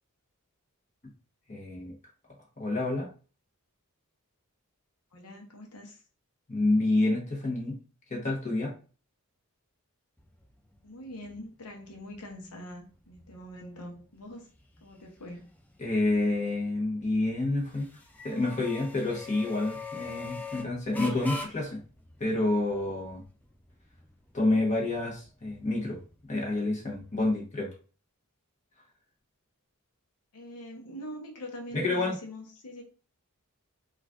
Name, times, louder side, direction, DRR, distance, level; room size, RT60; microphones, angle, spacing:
voice 1, 1.5-1.9 2.6-3.1 6.5-7.7 8.1-8.7 15.8-17.9 18.2-21.8 22.2-23.2 24.3-26.0 26.3-27.7 31.7-32.2, left 2 dB, 35° left, -2 dB, 1.1 m, -28 dB
voice 2, 5.1-6.0 10.8-14.5 14.8-15.5 30.3-32.8, equal, 90° left, 2 dB, 0.8 m, -44 dB
sound 1, 10.2-27.4, left 3 dB, 5° left, 0.4 m, -46 dB
4.1 x 2.4 x 2.4 m, 0.37 s
head